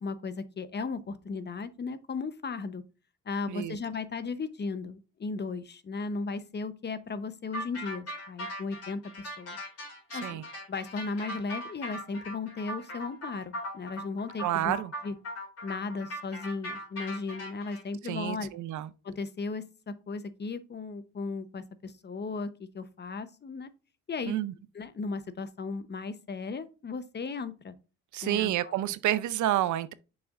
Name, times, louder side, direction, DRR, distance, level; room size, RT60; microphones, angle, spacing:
voice 1, 0.0-2.8 3.3-9.6 10.1-14.8 15.0-15.1 15.6-18.5 19.0-22.5 22.7-23.7 24.1-24.4 24.7-27.7 28.2-28.7, left 4 dB, 35° left, 0.8 m, -36 dB
sound 1, 7.5-17.8, equal, 55° left, 3.9 m, -39 dB
voice 2, 10.1-10.4 14.4-14.9 18.0-18.9 24.2-24.5 28.1-29.9, right 13 dB, 75° right, 0.6 m, -29 dB
6.8 x 6.3 x 2.5 m
cardioid pair, 90°, 30 cm